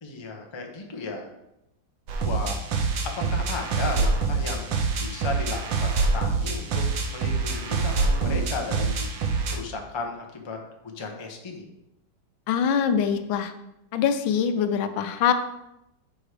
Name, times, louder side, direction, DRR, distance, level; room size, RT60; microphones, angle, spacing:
voice 1, 0.0-1.3 2.2-2.6 3.0-9.1 9.5-10.6 10.8-11.7, left 3 dB, 25° left, 2 dB, 0.6 m, -35 dB
sound 1, 2.1-9.6, right 4 dB, 75° right, 1.6 m, -25 dB
voice 2, 12.5-13.5 13.9-15.3, left 7 dB, 90° left, 9 dB, 1.5 m, -23 dB
7.1 x 4.7 x 4.9 m, 0.87 s
omnidirectional pair, 2.1 m